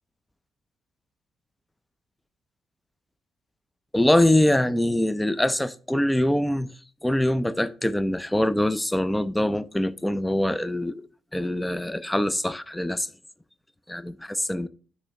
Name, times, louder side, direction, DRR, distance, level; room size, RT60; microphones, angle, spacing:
voice 1, 3.9-6.7 7.0-11.1 11.3-13.1 13.9-14.7, left 1 dB, 5° left, 0.4 m, -23 dB
9.7 x 4.3 x 3.6 m
cardioid pair, 110°, 0 cm